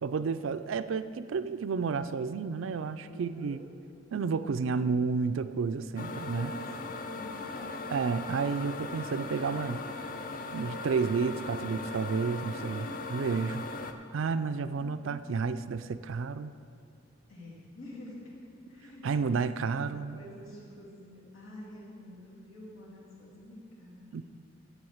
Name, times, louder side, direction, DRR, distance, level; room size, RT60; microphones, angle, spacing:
voice 1, 0.0-3.6 4.1-6.5 7.9-9.8 10.5-13.7 14.1-16.5 19.0-20.2 24.1-24.2, right 5 dB, 75° right, 13 dB, 0.4 m, -31 dB
voice 2, 3.0-3.6 6.2-7.8 12.5-13.3 14.7-15.1 17.3-19.3 19.7-24.2, left 1 dB, 85° left, -5 dB, 2.7 m, -48 dB
sound 1, 6.0-13.9, left 3 dB, 40° left, 0.5 m, -39 dB
7.9 x 7.7 x 7.1 m, 2.4 s
head